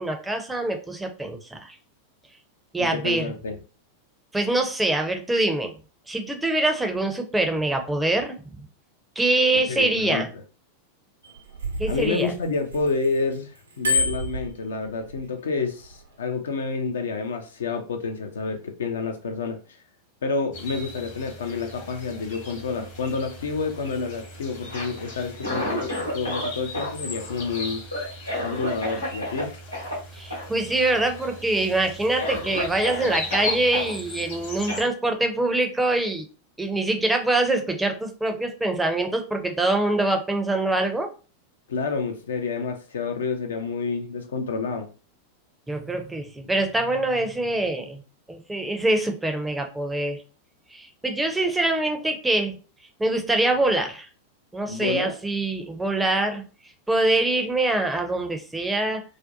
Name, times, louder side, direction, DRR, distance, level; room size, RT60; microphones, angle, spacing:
voice 1, 0.0-1.8 2.7-3.3 4.3-5.7 6.1-8.5 9.2-10.3 11.8-12.3 30.1-36.2 36.6-41.1 45.7-48.0 48.3-50.2 50.7-52.6 53.0-54.1 54.5-56.4 56.9-59.0, right 2 dB, 5° right, 0.5 m, -24 dB
voice 2, 2.8-3.6 9.7-10.2 11.9-19.8 20.2-27.9 28.4-29.6 41.7-44.9 54.7-55.1, left 4 dB, 65° left, 0.4 m, -29 dB
Bicycle bell, 11.2-13.2 13.6-15.2 15.8-16.1, left 2 dB, 75° right, 0.6 m, -28 dB
sound 1, 20.5-34.8, left 2 dB, 50° left, 0.9 m, -39 dB
Cough, 24.6-26.5 26.7-29.4 29.7-29.9 30.3-30.5 30.8-31.3 31.7-31.8 32.2-33.9 34.7-34.8, left 1 dB, 80° left, 1.0 m, -31 dB
2.5 x 2.1 x 2.6 m
figure-of-eight pair, 90°, 0 cm